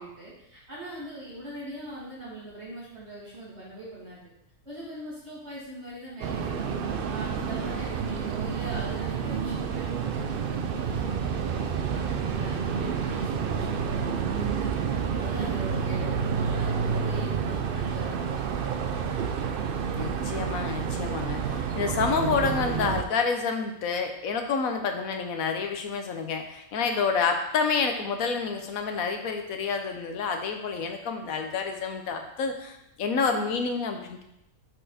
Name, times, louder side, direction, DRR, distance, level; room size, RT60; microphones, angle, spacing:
voice 1, 0.0-4.2 4.6-14.8 15.2-18.6, right 1 dB, 45° right, -9 dB, 3.0 m, -41 dB
sound 1, 6.2-23.0, right 6 dB, 65° right, 0.5 m, -29 dB
voice 2, 20.0-34.2, left 5 dB, 70° left, 5 dB, 1.3 m, -28 dB
5.9 x 5.7 x 4.2 m, 0.83 s
omnidirectional pair, 1.6 m